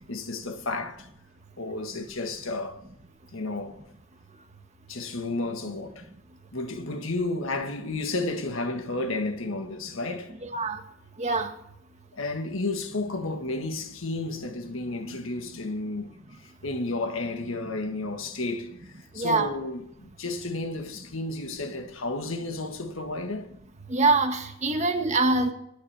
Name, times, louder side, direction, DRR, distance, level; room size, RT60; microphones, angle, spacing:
voice 1, 0.1-1.1 1.6-2.8 3.3-3.8 4.9-6.0 6.5-10.3 12.1-16.1 16.6-18.8 19.1-23.5, left 2 dB, 75° left, 1.5 m, -32 dB
voice 2, 11.2-11.5 19.2-19.5 23.9-25.5, right 3 dB, 35° right, 1.7 m, -24 dB
24.5 x 9.9 x 3.5 m
head